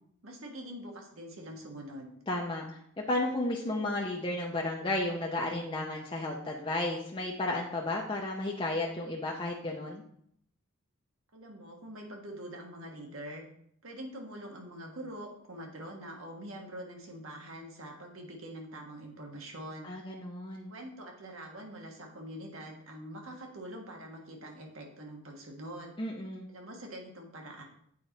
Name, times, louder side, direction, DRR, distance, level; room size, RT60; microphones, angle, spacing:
voice 1, 0.2-2.1 11.3-13.4 13.8-19.9 20.7-25.9 26.5-27.6, right 1 dB, 80° right, 1 dB, 1.5 m, -44 dB
voice 2, 2.3-2.8 3.1-10.0 19.8-20.7 26.0-26.5, left 2 dB, 25° left, -1 dB, 0.7 m, -33 dB
8.2 x 4.5 x 4.1 m, 0.69 s
head